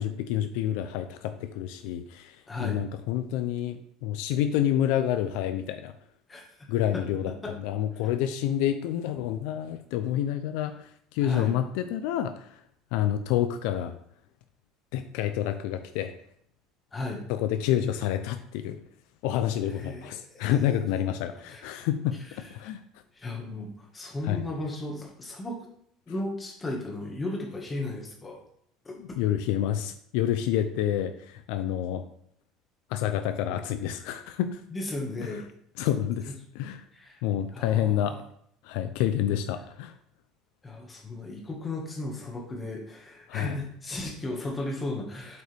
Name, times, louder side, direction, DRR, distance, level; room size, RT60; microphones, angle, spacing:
voice 1, 0.0-5.9 6.7-12.6 12.9-14.0 14.9-16.1 17.3-18.8 19.2-22.2 22.5-22.8 24.2-24.4 29.0-32.0 32.9-34.6 35.2-35.3 35.8-36.8 37.2-38.2 38.6-39.9 43.3-43.5, left 11 dB, 75° left, 9 dB, 0.5 m, -28 dB
voice 2, 2.5-2.8 6.3-7.0 7.4-7.5 11.2-11.5 16.9-17.2 19.7-20.5 21.5-21.8 23.1-25.6 26.1-28.4 28.9-29.0 34.7-35.4 36.3-36.4 36.9-37.2 37.5-38.2 40.6-45.4, left 2 dB, 15° left, -1 dB, 1.7 m, -35 dB
7.8 x 5.3 x 3.4 m, 0.67 s
cardioid pair, 150°, 0 cm